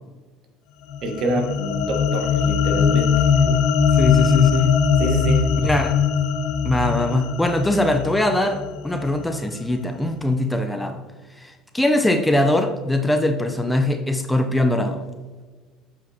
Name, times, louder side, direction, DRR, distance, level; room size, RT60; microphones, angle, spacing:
sound 1, 0.9-9.4, left 7 dB, 65° left, 0.6 m, -21 dB
voice 1, 1.0-3.6 5.0-5.5, right 1 dB, 55° right, 4 dB, 1.3 m, -26 dB
voice 2, 4.0-4.8 5.6-5.9 6.6-8.6 8.8-11.0 11.4-15.0, left 1 dB, 10° left, 7 dB, 0.6 m, -21 dB
7.8 x 5.0 x 2.8 m, 1.3 s
hypercardioid pair, 80°, 0 cm